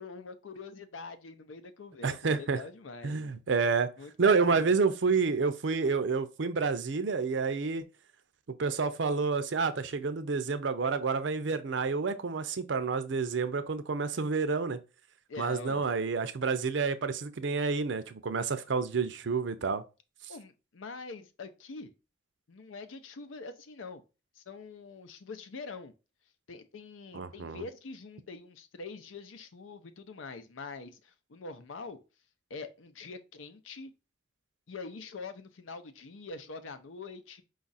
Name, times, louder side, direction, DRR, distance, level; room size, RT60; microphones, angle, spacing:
voice 1, 0.0-3.3 4.0-4.7 15.3-15.9 20.3-21.9 22.5-24.0 24.4-25.9 26.5-32.0 32.5-33.9 34.7-37.4, left 4 dB, 90° left, 0.6 m, -44 dB
voice 2, 2.0-2.6 3.0-3.9 4.2-7.8 8.6-14.8 15.4-19.8 27.1-27.6, right 4 dB, 70° right, 0.5 m, -29 dB
5.0 x 2.4 x 4.0 m
head